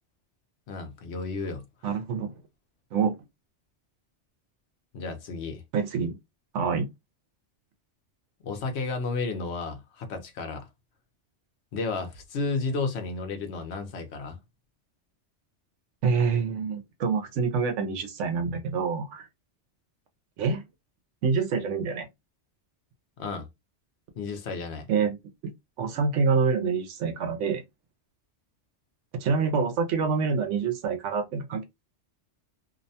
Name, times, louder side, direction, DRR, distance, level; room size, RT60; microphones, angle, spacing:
voice 1, 0.7-1.9 4.9-5.6 8.4-10.7 11.7-14.4 23.2-23.5 24.2-24.9, left 4 dB, 65° left, 1.0 m, -32 dB
voice 2, 1.8-2.3 2.9-3.2 5.7-6.2 6.5-6.9 16.0-19.3 20.4-20.6 21.2-22.1 24.9-25.2 25.4-25.5 25.8-27.6 29.1-31.6, right 5 dB, 85° right, 1.0 m, -26 dB
2.7 x 2.1 x 2.6 m
omnidirectional pair, 1.2 m